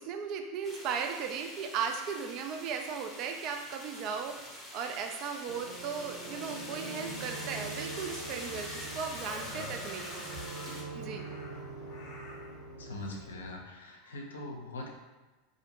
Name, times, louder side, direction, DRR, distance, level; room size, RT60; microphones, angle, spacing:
voice 1, 0.0-10.2 10.9-11.3, right 6 dB, 50° right, 4 dB, 0.3 m, -37 dB
sound 1, 0.6-10.8, left 1 dB, 10° left, 0.7 m, -45 dB
sound 2, 5.5-13.5, right 3 dB, 65° right, 1.1 m, -44 dB
Crow, 6.2-12.6 14.0-14.2, left 2 dB, 45° left, 0.7 m, -49 dB
voice 2, 9.4-9.8 12.8-14.9, left 2 dB, 80° left, 1 dB, 0.4 m, -42 dB
2.5 x 2.1 x 2.8 m, 1.2 s
hypercardioid pair, 90°, 0 cm